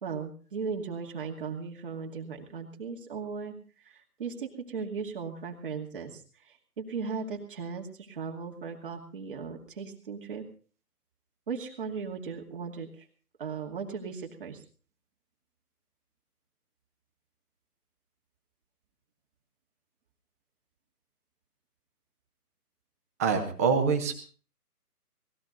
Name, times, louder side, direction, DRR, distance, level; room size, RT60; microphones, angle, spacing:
voice 1, 0.0-3.5 3.8-10.4 11.5-13.1 13.4-14.6, right 5 dB, 35° right, 1 dB, 2.7 m, -37 dB
voice 2, 23.2-24.1, right 5 dB, 10° right, 6 dB, 1.1 m, -25 dB
20.0 x 14.5 x 4.0 m, 0.40 s
figure-of-eight pair, 150°, 47 cm